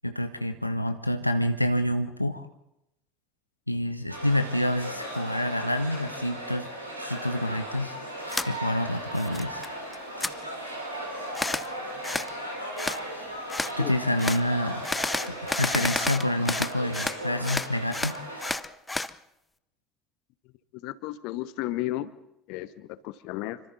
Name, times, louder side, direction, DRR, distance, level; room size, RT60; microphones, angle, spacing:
voice 1, 0.0-2.5 3.7-6.7 7.0-8.0 8.5-9.7 13.2-13.3 13.8-14.9 15.3-18.2, left 1 dB, 90° left, 9 dB, 0.7 m, -28 dB
sound 1, 4.1-18.5, right 1 dB, 90° right, 3.6 m, -37 dB
sound 2, 8.3-8.5 8.9-9.7 9.9-10.3 11.3-11.7 12.0-12.3 12.8-13.0 13.5-13.7 14.2-14.4 14.8-17.2 17.4-19.1, left 2 dB, 10° left, 0.7 m, -30 dB
voice 2, 20.8-22.1 22.5-23.6, left 16 dB, 55° left, 17 dB, 0.8 m, -33 dB
27.0 x 24.5 x 4.1 m, 0.84 s
figure-of-eight pair, 65°, 0 cm